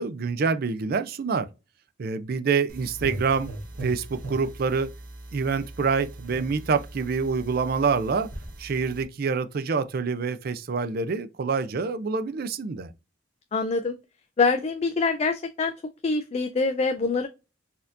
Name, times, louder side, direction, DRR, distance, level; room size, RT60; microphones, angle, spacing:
voice 1, 0.0-1.5 2.0-3.5 3.8-4.9 5.3-8.3 8.6-12.9, right 5 dB, 50° right, 0.4 m, -26 dB
sound 1, 2.7-9.0, right 1 dB, 85° right, 1.2 m, -39 dB
voice 2, 13.5-14.0 14.4-15.7 16.0-17.3, left 4 dB, 35° left, 0.3 m, -24 dB
4.2 x 2.7 x 2.5 m
head